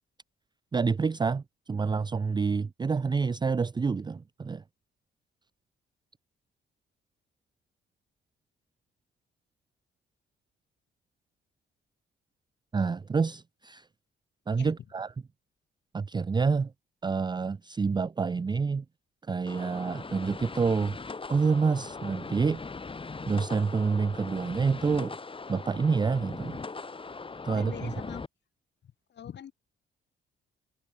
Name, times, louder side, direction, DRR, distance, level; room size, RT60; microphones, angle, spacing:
voice 1, 0.7-4.6 12.7-13.9 14.5-15.1 15.9-16.7 17.0-18.8 19.2-21.0 21.3-22.6 23.3-25.2 25.5-26.6 27.4-27.9, right 5 dB, 20° right, 0.5 m, -28 dB
sound 1, 19.5-28.3, left 4 dB, 25° left, 3.7 m, -40 dB
voice 2, 27.5-28.2 29.1-29.5, left 9 dB, 60° left, 4.5 m, -43 dB
cardioid pair, 90°, 20 cm